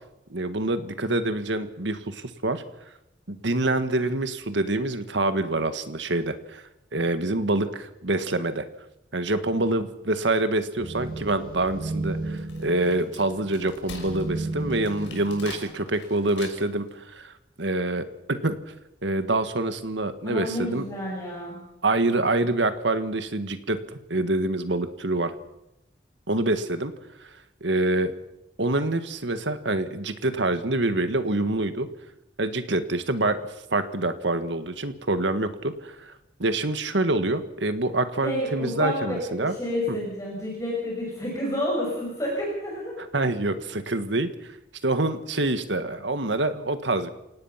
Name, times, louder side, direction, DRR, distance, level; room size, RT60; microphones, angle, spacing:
voice 1, 0.3-2.6 3.3-6.6 6.9-8.6 9.1-18.6 19.0-20.9 21.8-23.8 24.1-25.3 26.3-26.9 27.6-28.1 28.6-31.9 32.4-33.4 33.7-36.1 36.4-39.5 39.9-40.0 43.0-44.3 44.8-47.1, right 2 dB, 80° right, 10 dB, 1.7 m, -26 dB
sound 1, 10.8-15.9, right 2 dB, 50° right, 7.8 m, -34 dB
Wood, 12.2-16.9, left 4 dB, 80° left, 6.0 m, -44 dB
voice 2, 20.2-21.6 38.2-42.9, equal, 20° left, -3 dB, 6.4 m, -30 dB
28.0 x 18.0 x 5.9 m, 0.90 s
head